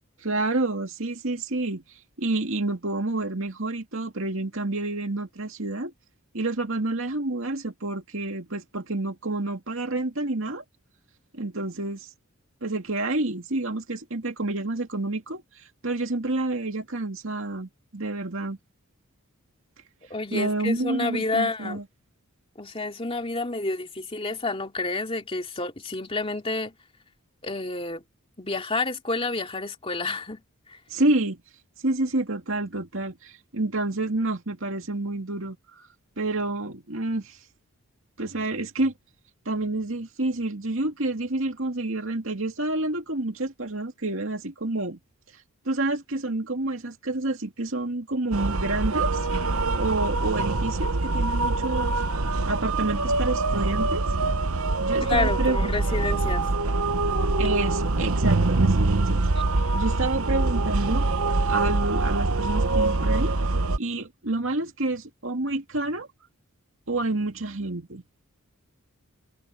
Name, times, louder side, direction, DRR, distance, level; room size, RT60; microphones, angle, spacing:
voice 1, 0.2-1.8 2.2-5.9 6.3-10.6 11.3-12.1 12.6-15.4 15.8-18.6 20.3-21.8 30.9-31.4 31.8-35.6 36.2-37.4 38.2-38.9 39.5-45.0 45.6-49.3 49.8-52.0 52.5-54.1 54.8-56.2 57.4-59.2 59.7-61.1 61.5-63.3 63.8-66.1 66.9-68.0, right 2 dB, 65° right, 2.4 m, -29 dB
voice 2, 20.1-21.8 22.6-26.7 27.4-28.0 28.4-30.4 30.7-30.8 55.0-56.4, left 3 dB, 25° left, 2.8 m, -29 dB
sound 1, 48.3-63.8, right 2 dB, 85° right, 1.1 m, -24 dB
head